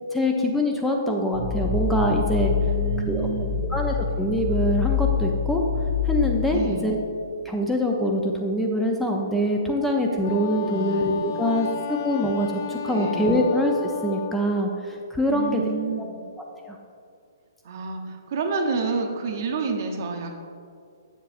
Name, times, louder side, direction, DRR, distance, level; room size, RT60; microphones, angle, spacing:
voice 1, 0.1-2.5 3.1-3.3 3.7-5.6 6.0-7.0 7.4-13.7 14.0-15.6 16.6-16.8, equal, 5° left, 0 dB, 0.5 m, -24 dB
sound 1, 1.3-7.3, left 6 dB, 20° left, 1.6 m, -26 dB
voice 2, 2.6-3.7 6.5-6.9 10.6-11.7 12.9-13.4 15.3-16.2 17.6-20.4, right 4 dB, 50° right, 3 dB, 0.8 m, -30 dB
Wind instrument woodwind instrument, 10.2-14.4, left 9 dB, 55° left, 0.4 m, -32 dB
7.2 x 7.1 x 2.5 m, 2.4 s
figure-of-eight pair, 125°, 2 cm